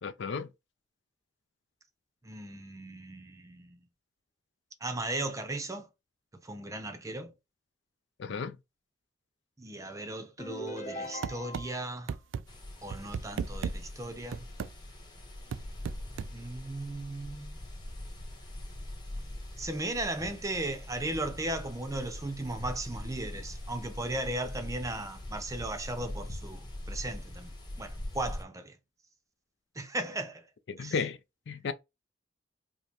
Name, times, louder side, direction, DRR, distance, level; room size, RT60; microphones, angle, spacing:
voice 1, 0.0-0.5 8.2-8.6 30.7-31.2 31.5-31.7, left 5 dB, 70° left, 0.4 m, -33 dB
voice 2, 2.2-3.9 4.8-5.9 6.4-7.3 9.6-12.2 12.8-14.5 16.3-17.6 19.6-28.7 29.8-30.4 30.8-30.9, right 2 dB, 15° right, 0.6 m, -36 dB
sound 1, 10.4-11.9, equal, 40° left, 0.8 m, -40 dB
sound 2, 11.2-11.7 12.1-12.4 12.9-13.8 14.3-14.7 15.5-16.3, right 6 dB, 80° right, 0.3 m, -34 dB
sound 3, 12.5-28.4, left 1 dB, 25° left, 1.0 m, -42 dB
5.1 x 2.1 x 2.9 m
head